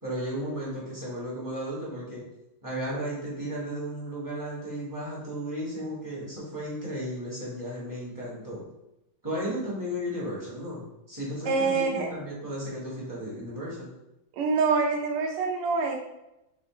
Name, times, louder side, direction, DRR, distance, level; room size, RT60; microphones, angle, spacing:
voice 1, 0.0-2.2 2.6-8.6 9.2-13.9, equal, 10° right, -8 dB, 1.2 m, -34 dB
voice 2, 11.5-12.1 14.3-16.0, right 4 dB, 90° right, 1 dB, 1.7 m, -25 dB
5.1 x 2.5 x 3.6 m, 0.90 s
omnidirectional pair, 2.4 m